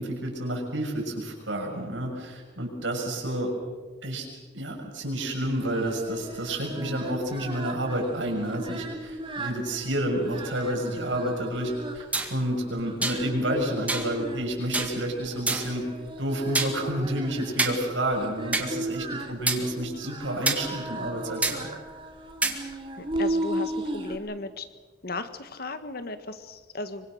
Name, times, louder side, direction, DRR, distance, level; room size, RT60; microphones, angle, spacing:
voice 1, 0.0-3.5 4.0-4.3 4.5-12.0 12.3-15.8 16.2-21.7, right 1 dB, 85° right, 1 dB, 6.7 m, -30 dB
Singing, 5.4-24.2, right 1 dB, 30° right, 2.7 m, -37 dB
sound 1, 12.1-12.3 13.0-13.2 13.9-14.1 14.7-15.0 15.5-15.7 16.5-16.7 17.6-17.8 18.5-18.7 19.5-19.6 20.5-20.6 21.4-21.6 22.4-22.6, right 2 dB, 10° right, 2.0 m, -26 dB
voice 2, 23.0-24.7 25.0-27.1, left 2 dB, 55° left, 10 dB, 1.7 m, -36 dB
26.0 x 24.0 x 6.5 m, 1.3 s
head